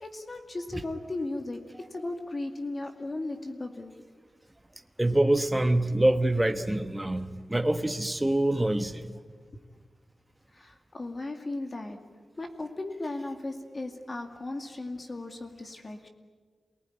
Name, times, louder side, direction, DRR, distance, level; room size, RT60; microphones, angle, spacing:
voice 1, 0.0-1.6 1.9-3.9 10.5-12.0 12.4-16.1, left 2 dB, 35° left, 5 dB, 2.2 m, -36 dB
voice 2, 5.0-9.1, right 1 dB, 10° right, 8 dB, 1.2 m, -25 dB
28.0 x 19.0 x 9.9 m, 1.5 s
wide cardioid pair, 145°, 0 cm